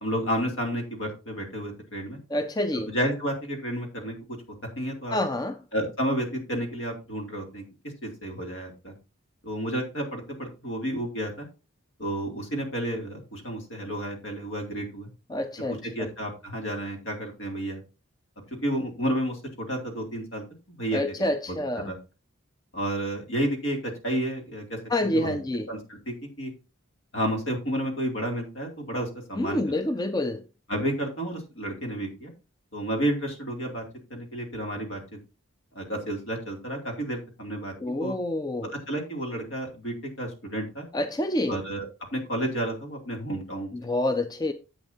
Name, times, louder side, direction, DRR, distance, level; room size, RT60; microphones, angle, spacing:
voice 1, 0.0-2.2 2.9-4.4 4.8-5.2 5.7-7.6 8.0-8.9 9.4-11.5 12.0-15.1 15.7-17.8 18.6-21.0 21.5-22.0 22.7-25.4 25.7-26.5 27.1-29.8 30.7-32.3 32.7-33.8 34.1-35.0 35.7-37.7 38.0-38.1 38.9-40.9 41.5-41.9 42.1-43.7, right 1 dB, 65° left, 2.7 m, -31 dB
voice 2, 2.3-2.9 5.1-5.6 15.3-15.9 20.9-21.9 24.9-25.7 29.4-30.4 37.8-38.7 40.9-41.6 43.7-44.5, left 1 dB, 20° left, 0.4 m, -27 dB
10.5 x 7.9 x 2.7 m
head